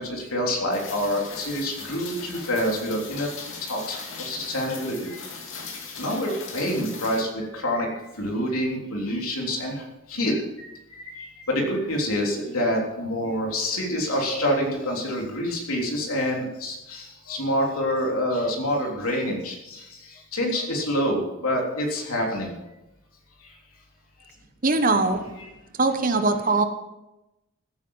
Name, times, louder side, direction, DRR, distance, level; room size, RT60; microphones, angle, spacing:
voice 1, 0.0-3.3 3.6-5.2 6.0-7.9 8.2-10.4 11.0-22.5 25.4-25.5, equal, 85° left, 0 dB, 3.5 m, -27 dB
Rain, 0.7-7.2, left 5 dB, 65° left, 2.9 m, -39 dB
voice 2, 24.6-25.2 25.8-26.6, right 3 dB, 40° right, 8 dB, 1.1 m, -21 dB
15.5 x 9.5 x 5.6 m, 0.96 s
head